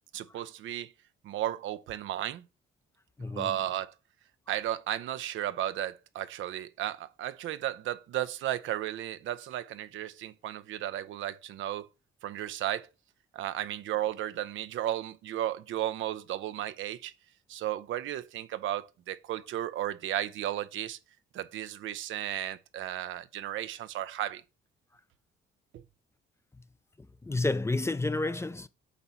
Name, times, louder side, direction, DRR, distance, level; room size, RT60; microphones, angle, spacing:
voice 1, 0.1-0.9 1.2-2.4 3.2-3.9 4.5-11.9 12.2-12.9 13.3-17.1 17.5-21.0 21.3-24.4 25.7-25.8, right 12 dB, 80° right, 0.6 m, -34 dB
voice 2, 3.2-3.6 27.2-28.7, left 2 dB, 15° left, 0.4 m, -30 dB
8.2 x 3.0 x 5.6 m
cardioid pair, 90°, 20 cm